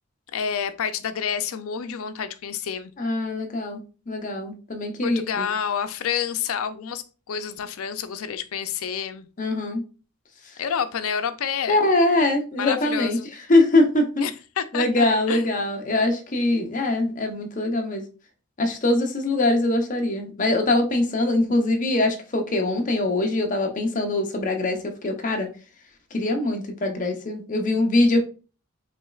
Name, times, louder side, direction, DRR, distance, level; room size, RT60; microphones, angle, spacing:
voice 1, 0.3-2.9 5.0-9.3 10.6-11.8 12.6-13.3 14.2-15.5, left 7 dB, 75° left, 11 dB, 0.4 m, -29 dB
voice 2, 3.0-5.5 9.4-9.8 11.7-13.2 13.5-14.0 14.7-18.0 18.6-25.5 26.1-28.2, left 2 dB, 35° left, 4 dB, 0.7 m, -22 dB
4.2 x 3.0 x 2.3 m, 0.34 s
head